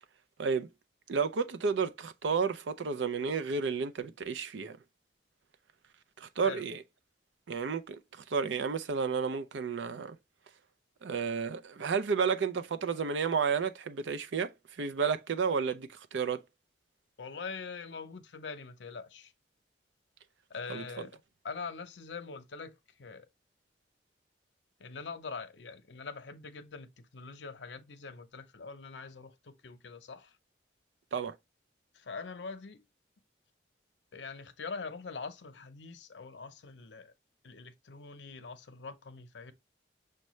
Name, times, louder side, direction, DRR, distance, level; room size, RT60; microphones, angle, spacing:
voice 1, 1.1-4.8 6.2-6.8 7.5-8.0 8.3-10.2 11.0-16.4 20.7-21.1 31.1-31.3, right 5 dB, 85° right, 0.5 m, -31 dB
voice 2, 17.2-19.3 20.5-21.1 21.4-23.3 24.8-30.4 31.9-32.8 34.1-37.1 37.4-39.5, left 4 dB, 80° left, 0.6 m, -43 dB
6.3 x 2.2 x 3.0 m
head